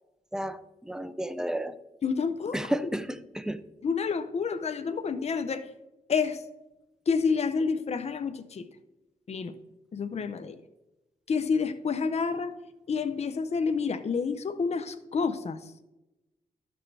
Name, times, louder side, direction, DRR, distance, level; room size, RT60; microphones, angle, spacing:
voice 1, 0.3-1.8 2.5-3.6, right 1 dB, 5° right, 13 dB, 0.6 m, -32 dB
voice 2, 2.0-2.6 3.8-5.7 6.1-6.4 7.1-8.6 9.3-9.6 9.9-10.6 11.3-12.6 12.9-15.6, left 5 dB, 45° left, 11 dB, 0.6 m, -29 dB
13.0 x 6.0 x 3.3 m, 1.0 s
cardioid pair, 80°, 15 cm